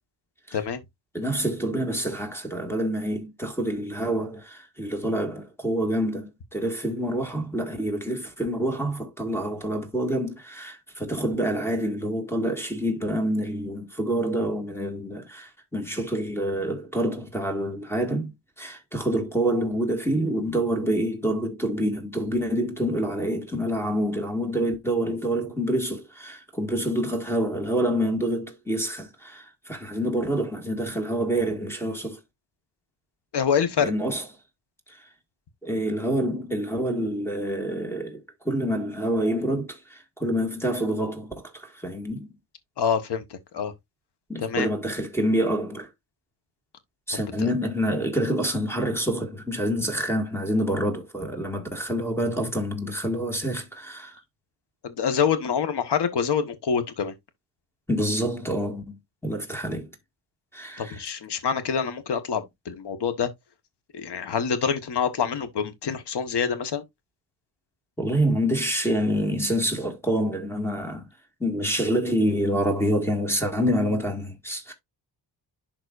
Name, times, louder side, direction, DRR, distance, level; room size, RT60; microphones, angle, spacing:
voice 1, 1.1-18.3 18.6-32.2 33.8-34.2 34.9-35.0 35.6-38.2 38.5-42.3 44.3-45.9 47.1-54.2 57.9-59.0 59.2-59.9 60.5-61.0 68.0-71.1 71.4-74.7, equal, 5° left, 1.8 m, -27 dB
voice 2, 33.3-33.9 42.8-43.7 44.4-44.7 47.4-47.5 54.8-57.1 60.8-63.3 63.9-66.8, left 7 dB, 65° left, 1.3 m, -26 dB
11.5 x 3.9 x 2.5 m
wide cardioid pair, 120°, 43 cm